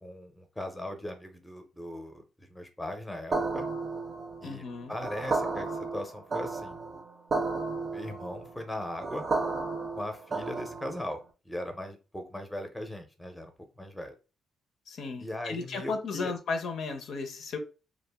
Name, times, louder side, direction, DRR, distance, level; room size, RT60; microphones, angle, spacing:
voice 1, 0.0-3.6 4.4-6.8 7.8-9.2 10.0-14.2 15.2-16.3, left 1 dB, 5° left, 0.6 m, -39 dB
sound 1, 3.3-11.1, right 3 dB, 45° right, 0.5 m, -33 dB
voice 2, 4.4-4.9 14.9-17.6, left 4 dB, 65° left, 0.5 m, -35 dB
2.4 x 2.0 x 3.3 m
cardioid pair, 90°, 0 cm